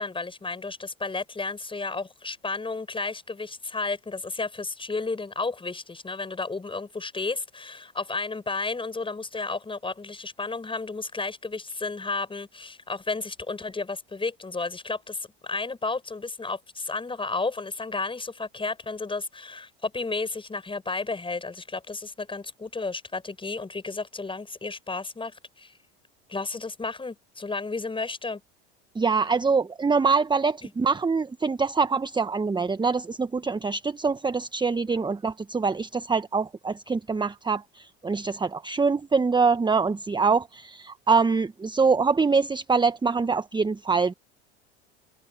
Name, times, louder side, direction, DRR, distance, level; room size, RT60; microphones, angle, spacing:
voice 1, 0.0-25.7 26.3-28.4 30.6-30.7 34.9-35.1, left 3 dB, 15° left, 6.7 m, -32 dB
voice 2, 28.9-44.1, right 4 dB, 15° right, 1.2 m, -24 dB
hypercardioid pair, 75°, 32 cm